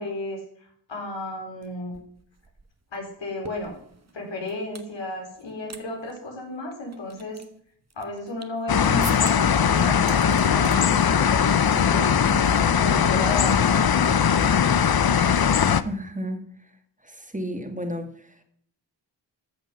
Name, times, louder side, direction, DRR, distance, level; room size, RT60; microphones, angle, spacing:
voice 1, 0.0-1.9 2.9-3.8 4.1-7.4 7.9-12.4 12.8-14.4, left 2 dB, 85° left, 0 dB, 4.5 m, -33 dB
sound 1, 1.6-1.7 1.9-4.9 5.3-5.8 6.1-6.2 6.7-8.6 9.0-9.6 9.9-10.8 11.1-11.4 11.7-12.0 12.3-12.5 13.5-14.2, right 4 dB, 35° right, 1.4 m, -43 dB
sound 2, 8.7-15.8, left 7 dB, 55° left, 0.8 m, -20 dB
voice 2, 15.7-16.4 17.2-18.1, equal, 15° right, 6 dB, 2.1 m, -31 dB
14.0 x 6.8 x 5.8 m, 0.65 s
cardioid pair, 60°, 43 cm